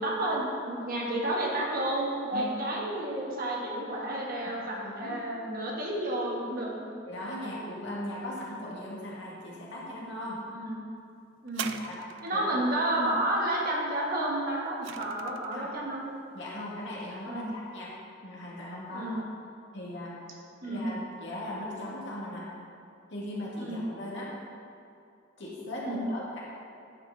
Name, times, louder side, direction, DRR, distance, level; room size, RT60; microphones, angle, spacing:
voice 1, 0.0-7.0 10.5-10.8 11.4-11.7 12.2-16.0 17.3-17.6 18.9-19.2 20.6-20.9 23.6-23.8 25.9-26.1, right 1 dB, 45° right, -3 dB, 1.4 m, -31 dB
voice 2, 4.7-5.2 7.1-10.4 11.7-12.0 12.3-12.6 15.5-15.7 16.3-17.9 18.2-19.2 19.7-20.1 20.6-22.5 23.1-24.3 25.4-26.4, left 1 dB, 65° left, -5 dB, 2.0 m, -38 dB
sound 1, 11.5-12.5 14.2-15.6 16.4-16.5, right 8 dB, 65° right, 0.4 m, -40 dB
9.8 x 6.0 x 3.9 m, 2.6 s
head